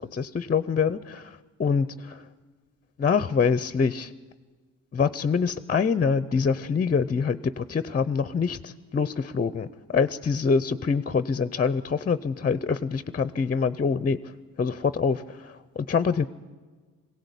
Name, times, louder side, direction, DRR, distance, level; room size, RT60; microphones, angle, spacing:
voice 1, 0.0-2.3 3.0-4.1 4.9-14.2 14.6-16.2, left 5 dB, 30° left, 14 dB, 0.6 m, -25 dB
22.0 x 17.0 x 8.3 m, 1.4 s
cardioid pair, 90°, 30 cm